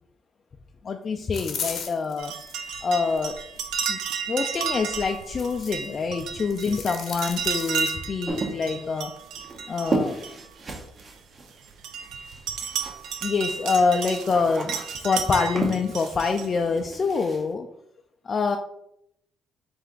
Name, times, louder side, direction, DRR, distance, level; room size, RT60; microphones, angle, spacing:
voice 1, 0.8-2.3 2.8-3.4 3.9-4.0 4.3-9.1 9.7-10.2 13.2-17.7 18.2-18.6, left 4 dB, 45° left, 4 dB, 0.3 m, -25 dB
sound 1, 1.3-2.5 3.1-3.7 5.1-5.9 6.2-7.9, left 6 dB, 65° left, 0.8 m, -36 dB
sound 2, 2.2-11.0 11.5-16.5, right 6 dB, 90° right, 0.4 m, -33 dB
sound 3, 8.3-13.2 13.4-17.5, right 2 dB, 40° right, 0.8 m, -33 dB
3.5 x 3.3 x 3.8 m, 0.76 s
cardioid pair, 90°, 0 cm